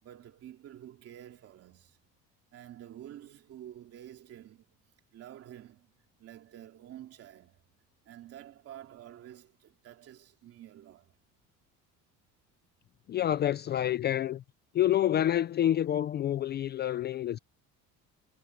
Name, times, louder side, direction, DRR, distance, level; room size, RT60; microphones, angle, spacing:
voice 1, 0.0-2.0 2.5-4.7 5.1-5.9 6.2-7.6 8.0-11.2, right 11 dB, 45° right, 2.8 m, -49 dB
voice 2, 13.1-14.4 14.7-17.4, left 11 dB, 30° left, 0.4 m, -28 dB
cardioid pair, 165°, 32 cm